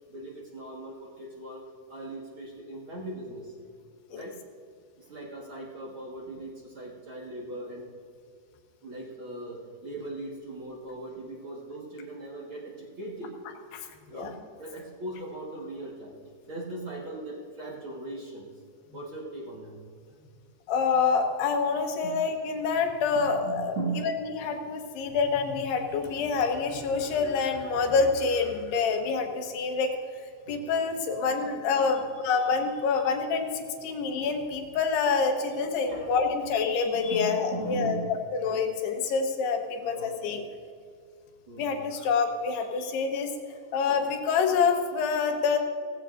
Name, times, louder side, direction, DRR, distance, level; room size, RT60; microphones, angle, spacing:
voice 1, 0.1-1.6 1.9-3.5 4.1-4.4 5.0-7.9 8.8-13.4 14.1-16.1 16.5-18.5 18.9-19.8 22.0-22.3 23.1-24.2 30.4-30.6 31.9-32.1 35.9-36.1 36.9-38.2 39.8-40.1 41.5-42.1, right 2 dB, 60° right, -3 dB, 1.4 m, -39 dB
voice 2, 20.7-29.9 30.5-40.4 41.6-43.3 43.7-45.6, left 5 dB, 75° left, 3 dB, 3.2 m, -27 dB
18.0 x 15.5 x 2.6 m, 2.1 s
omnidirectional pair, 4.8 m